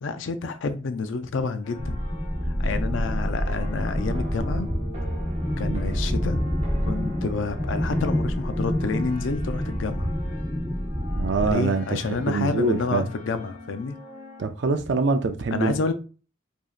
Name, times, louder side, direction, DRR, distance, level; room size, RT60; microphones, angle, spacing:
voice 1, 0.0-2.0 2.5-4.7 5.6-6.4 6.8-10.1 11.4-14.0 15.5-15.9, left 4 dB, 85° left, 0.4 m, -29 dB
sound 1, 1.6-14.5, left 3 dB, 45° left, 1.2 m, -44 dB
sound 2, 1.8-11.5, equal, 5° left, 0.9 m, -27 dB
sound 3, 3.4-9.0, equal, 30° right, 0.8 m, -38 dB
voice 2, 11.2-12.0 12.3-13.0 14.4-15.9, right 4 dB, 70° right, 0.4 m, -24 dB
4.8 x 2.8 x 2.4 m
head